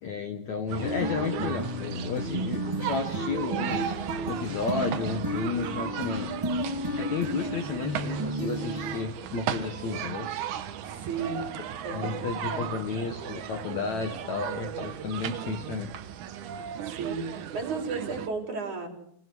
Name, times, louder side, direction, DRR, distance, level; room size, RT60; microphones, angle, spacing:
voice 1, 0.0-3.9 4.3-6.3 6.9-10.3 11.9-15.9, left 5 dB, 60° left, 5 dB, 2.2 m, -32 dB
sound 1, 0.7-18.3, right 9 dB, 65° right, 2.2 m, -36 dB
sound 2, 0.8-8.9, equal, 10° right, 3.1 m, -32 dB
voice 2, 10.8-11.5 11.8-12.8 16.9-18.9, right 4 dB, 50° right, 3 dB, 5.2 m, -34 dB
28.0 x 19.0 x 6.3 m, 0.70 s
omnidirectional pair, 4.6 m